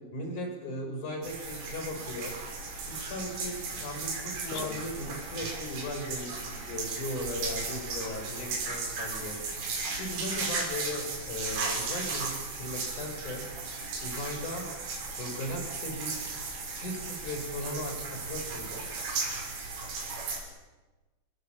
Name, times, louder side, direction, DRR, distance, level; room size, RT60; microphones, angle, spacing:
voice 1, 0.1-2.3 2.9-9.4 10.0-13.4 14.0-14.7 15.2-16.2 16.7-18.8, left 1 dB, 40° left, 4 dB, 7.1 m, -37 dB
sound 1, 1.2-20.4, right 4 dB, 85° right, 8.9 m, -36 dB
sound 2, 4.5-5.4, left 9 dB, 65° left, 2.7 m, -42 dB
29.5 x 21.0 x 8.8 m, 1.2 s
omnidirectional pair, 5.9 m